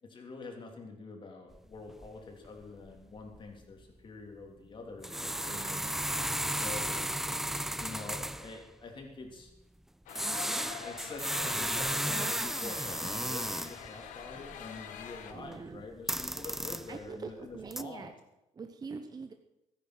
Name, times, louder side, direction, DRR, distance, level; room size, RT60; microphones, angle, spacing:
voice 1, 0.0-5.8 6.5-7.0 7.8-9.5 10.5-18.1, left 3 dB, 40° left, 2 dB, 3.4 m, -46 dB
sound 1, 1.5-1.6 1.9-2.2 2.4-2.6 2.9-3.0 3.3-3.5 5.0-8.6 10.1-13.9 14.2-15.6 15.9-17.1 17.5-17.8, right 1 dB, 5° right, 0.5 m, -34 dB
voice 2, 5.4-6.0 15.3-15.8 16.9-18.1 18.5-19.3, right 5 dB, 30° right, 7 dB, 0.9 m, -43 dB
sound 2, 10.1-15.3, left 8 dB, 90° left, 1.4 m, -46 dB
13.5 x 10.5 x 6.4 m, 0.91 s
cardioid pair, 115°, 13 cm